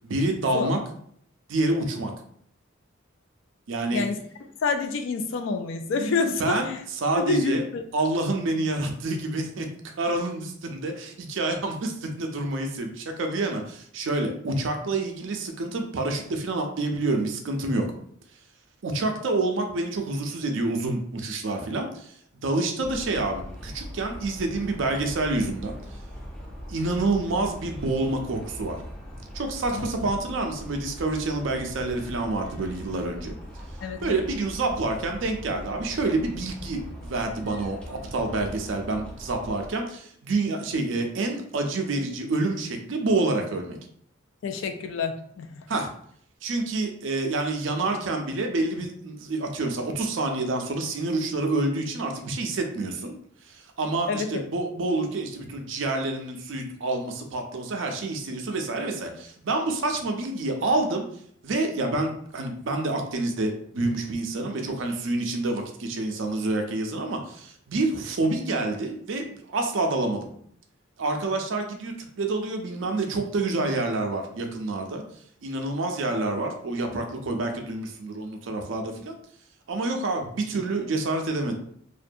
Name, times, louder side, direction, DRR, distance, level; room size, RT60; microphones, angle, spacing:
voice 1, 0.0-0.8 1.5-2.1 3.7-4.0 6.4-6.7 7.0-7.6 7.9-9.7 10.0-17.8 18.8-22.1 22.4-25.8 26.7-28.8 29.3-33.3 34.0-43.8 45.7-45.9 46.4-53.1 53.5-61.1 61.4-70.3 71.0-75.0 75.4-79.1 79.7-81.5, right 2 dB, 65° right, 4 dB, 0.5 m, -28 dB
voice 2, 4.6-6.8 7.2-7.8 29.7-29.9 33.8-34.2 44.4-45.6 54.1-54.4, left 4 dB, 70° left, 6 dB, 0.3 m, -28 dB
sound 1, 22.8-39.7, equal, 5° left, 0.5 m, -41 dB
2.5 x 2.2 x 2.6 m, 0.65 s
head